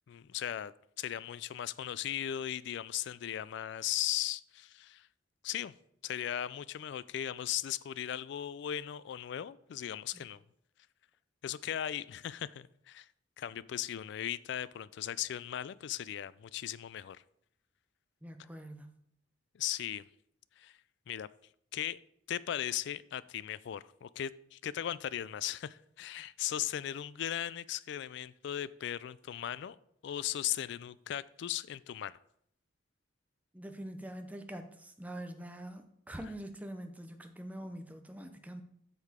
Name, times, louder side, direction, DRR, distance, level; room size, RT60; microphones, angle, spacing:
voice 1, 0.1-0.7 1.0-5.1 5.4-5.7 6.0-10.4 11.4-13.1 13.4-17.2 19.5-20.0 20.6-20.7 21.1-21.3 21.7-22.0 22.3-29.8 30.0-32.2, left 11 dB, 65° left, 0.3 m, -37 dB
voice 2, 18.2-19.0 33.5-38.6, right 1 dB, 10° right, 0.6 m, -44 dB
8.1 x 6.5 x 3.6 m
head